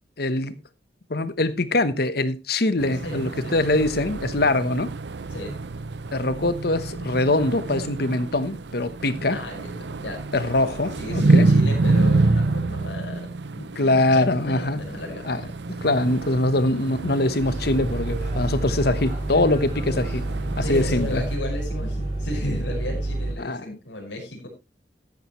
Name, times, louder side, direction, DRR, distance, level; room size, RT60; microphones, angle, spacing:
voice 1, 0.2-0.6 1.1-4.9 6.1-9.4 10.3-11.5 13.6-14.8 15.3-15.4 15.7-20.2 20.7-21.2 23.4-23.8, left 2 dB, 55° left, 1.1 m, -23 dB
sound 1, 2.8-21.4, right 3 dB, 70° right, 0.7 m, -27 dB
voice 2, 3.0-3.6 5.3-5.6 9.3-10.2 10.9-13.3 13.9-15.3 20.6-24.5, left 1 dB, 85° left, 5.4 m, -34 dB
sound 2, 17.4-23.3, right 1 dB, 40° right, 5.4 m, -29 dB
14.0 x 10.5 x 3.1 m
head